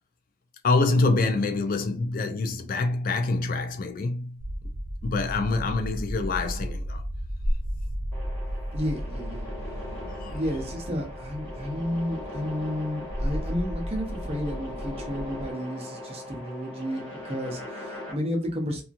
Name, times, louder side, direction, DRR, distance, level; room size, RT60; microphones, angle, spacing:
voice 1, 0.6-4.4 5.0-7.0 10.0-10.4, left 3 dB, 45° left, 0.3 m, -26 dB
sound 1, 4.4-15.5, equal, 70° right, 0.7 m, -34 dB
sound 2, 8.1-18.1, left 1 dB, 10° left, 1.1 m, -40 dB
voice 2, 8.7-9.5 10.3-18.8, equal, 30° right, 0.7 m, -32 dB
2.8 x 2.3 x 2.5 m
head